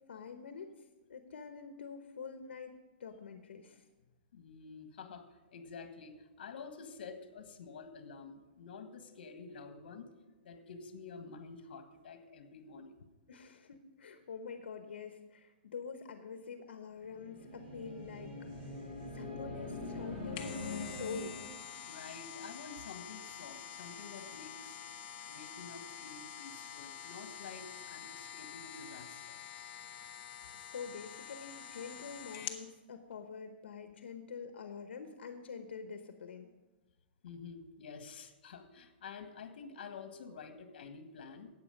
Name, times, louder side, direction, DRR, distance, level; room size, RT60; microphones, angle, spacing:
voice 1, 0.1-0.7 1.1-3.8 13.3-18.5 19.1-21.7 30.5-36.5, left 5 dB, 80° left, 8 dB, 0.9 m, -46 dB
voice 2, 4.3-5.2 5.5-10.1 10.4-12.9 21.9-24.8 25.3-29.5 37.2-41.5, left 5 dB, 60° left, 8 dB, 1.5 m, -49 dB
sound 1, 17.0-21.7, left 2 dB, 25° right, 4.4 m, -43 dB
sound 2, 20.1-32.7 33.1-33.2, left 9 dB, 25° left, 0.9 m, -47 dB
12.5 x 8.6 x 5.2 m, 1.2 s
hypercardioid pair, 165°, 6 cm